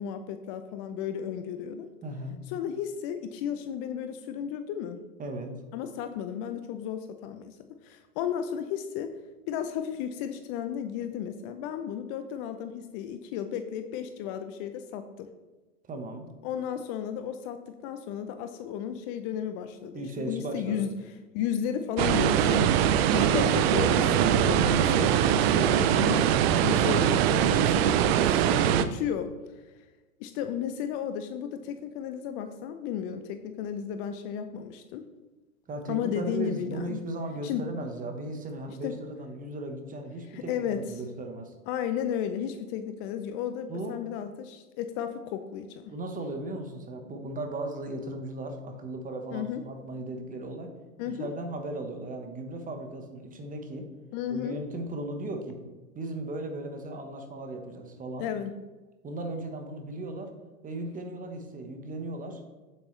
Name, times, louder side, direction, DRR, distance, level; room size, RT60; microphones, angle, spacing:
voice 1, 0.0-1.9 2.5-5.0 5.7-7.6 7.8-9.1 9.5-15.3 16.4-20.9 21.3-26.3 26.6-29.3 30.2-35.1 35.9-37.0 37.4-37.7 38.7-38.9 40.3-40.8 41.7-45.8 49.3-49.6 51.0-51.3 54.1-54.6 58.2-58.5, left 9 dB, 40° left, 8 dB, 0.6 m, -34 dB
voice 2, 2.0-2.4 5.2-5.5 15.9-16.3 19.9-20.9 24.0-24.3 25.7-26.5 35.7-41.5 43.7-44.0 45.9-50.7 51.2-53.9 54.3-55.6 55.9-58.3 59.0-60.3 60.6-62.4, right 2 dB, 20° right, 5 dB, 1.2 m, -36 dB
sound 1, 22.0-28.8, right 10 dB, 45° right, 0.6 m, -22 dB
8.9 x 7.8 x 3.2 m, 1.2 s
hypercardioid pair, 115°, 43 cm